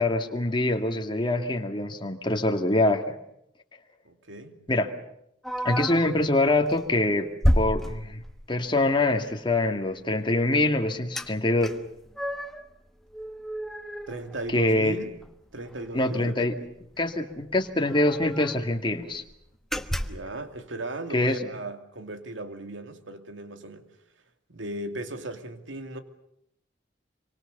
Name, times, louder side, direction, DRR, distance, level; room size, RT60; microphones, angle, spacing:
voice 1, 0.0-3.2 4.7-4.9 5.6-7.3 7.6-8.2 8.5-11.7 14.5-15.0 15.9-16.5 17.0-19.2 21.1-21.4, left 2 dB, 25° left, 2.2 m, -24 dB
voice 2, 4.0-4.6 14.1-15.1 15.5-16.7 19.9-23.8 24.5-26.0, right 2 dB, 90° right, 2.6 m, -37 dB
sound 1, 5.4-6.2 6.7-6.9 7.4-8.6 11.2-11.3 11.6-12.7 13.1-14.9 15.2-15.3 15.7-15.9 17.0-17.1 17.3-17.4 17.8-18.7 19.1-19.3 19.7-20.3, equal, ahead, 1.2 m, -30 dB
27.0 x 25.0 x 6.8 m
head